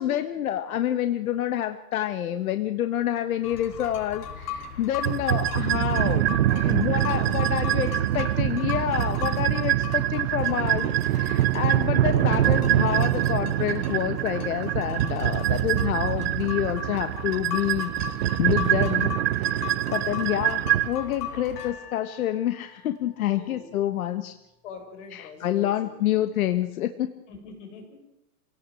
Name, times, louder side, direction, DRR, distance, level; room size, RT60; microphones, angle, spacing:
voice 1, 0.0-7.9 8.1-24.3 25.1-27.1, left 11 dB, 65° left, 9 dB, 1.6 m, -28 dB
sound 1, 3.4-21.7, left 7 dB, 85° left, 5.4 m, -38 dB
sound 2, 5.0-20.9, right 14 dB, 40° right, 0.8 m, -24 dB
voice 2, 6.4-8.0 23.2-23.7 24.6-26.3 27.3-28.0, left 5 dB, 50° left, 4 dB, 7.2 m, -44 dB
sound 3, 21.6-24.7 25.5-25.6, left 7 dB, 20° left, 1.8 m, -49 dB
27.0 x 18.0 x 7.8 m, 0.83 s
supercardioid pair, 175°, 45 cm